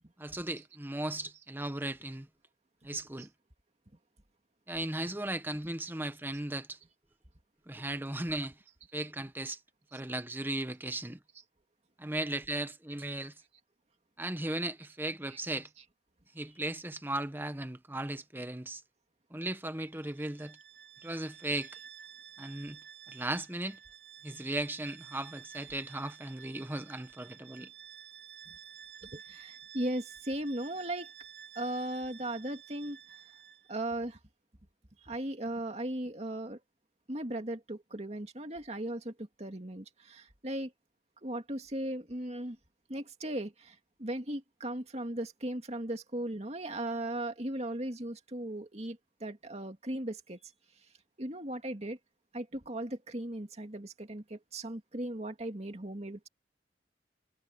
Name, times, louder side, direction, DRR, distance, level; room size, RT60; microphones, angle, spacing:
voice 1, 0.2-2.3 2.8-3.3 4.7-6.8 7.7-8.6 8.9-9.6 9.9-11.2 12.0-13.3 14.2-15.7 16.3-18.8 19.3-20.6 21.0-21.8 22.4-22.8 23.1-23.8 24.2-27.7, right 1 dB, 10° right, 1.1 m, -36 dB
Bowed string instrument, 19.9-33.8, right 8 dB, 80° right, 1.9 m, -52 dB
voice 2, 29.1-31.1 31.6-33.1 33.7-34.2 35.0-36.6 37.1-40.7 41.2-42.6 42.9-50.5 51.2-52.0 52.3-56.3, right 1 dB, 35° right, 2.3 m, -37 dB
head